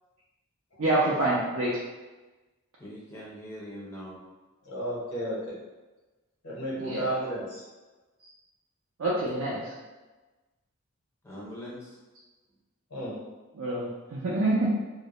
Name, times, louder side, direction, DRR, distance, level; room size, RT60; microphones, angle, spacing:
voice 1, 0.8-1.8 6.8-7.0 9.0-9.7 13.6-14.8, right 2 dB, 70° right, -7 dB, 0.4 m, -26 dB
voice 2, 2.8-4.2 11.2-11.9, equal, 10° left, -5 dB, 0.4 m, -42 dB
voice 3, 4.6-5.6 6.4-7.6 12.9-13.2, right 1 dB, 85° left, -6 dB, 1.0 m, -32 dB
2.3 x 2.0 x 2.8 m, 1.2 s
head